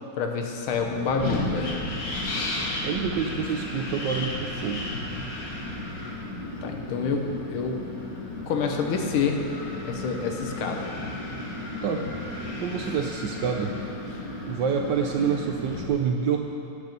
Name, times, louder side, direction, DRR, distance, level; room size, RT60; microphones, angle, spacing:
voice 1, 0.1-1.8 6.6-7.8 8.5-9.5 9.8-10.9, left 5 dB, 75° left, 3 dB, 1.6 m, -27 dB
Wind, 0.7-15.9, left 2 dB, 45° left, 1.6 m, -34 dB
voice 2, 2.8-4.9 11.8-12.0 12.6-13.8 14.4-16.4, right 7 dB, 70° right, 3 dB, 1.1 m, -27 dB
9.5 x 7.2 x 6.6 m, 2.6 s
omnidirectional pair, 2.4 m